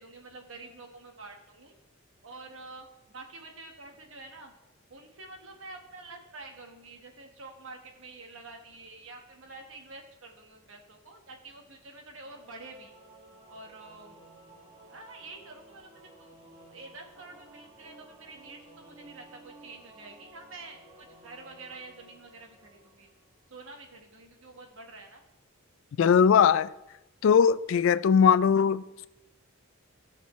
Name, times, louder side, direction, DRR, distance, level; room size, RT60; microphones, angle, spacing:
voice 1, 0.0-1.7 2.2-4.5 4.9-12.9 13.5-14.2 14.9-15.9 16.2-16.3 16.7-23.1 23.5-25.2, right 3 dB, 70° right, 1.4 m, -48 dB
Singing / Musical instrument, 12.2-23.5, right 2 dB, 30° right, 2.0 m, -54 dB
voice 2, 26.0-26.7 27.2-29.1, left 7 dB, 65° left, 0.3 m, -20 dB
15.5 x 6.0 x 3.2 m
head